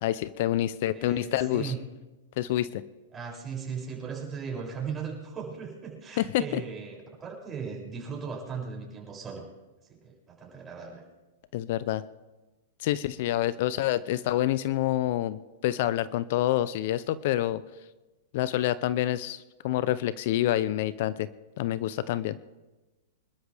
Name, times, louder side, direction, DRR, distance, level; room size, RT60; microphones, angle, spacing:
voice 1, 0.0-1.7 2.4-2.8 6.2-6.6 11.5-12.0 12.8-17.6 18.3-21.3 21.6-22.4, left 13 dB, 60° left, 16 dB, 0.6 m, -27 dB
voice 2, 0.9-1.8 3.1-9.5 9.9-11.0, right 6 dB, 20° right, -2 dB, 6.9 m, -37 dB
26.0 x 13.0 x 3.5 m, 1.1 s
hypercardioid pair, 120°, 0 cm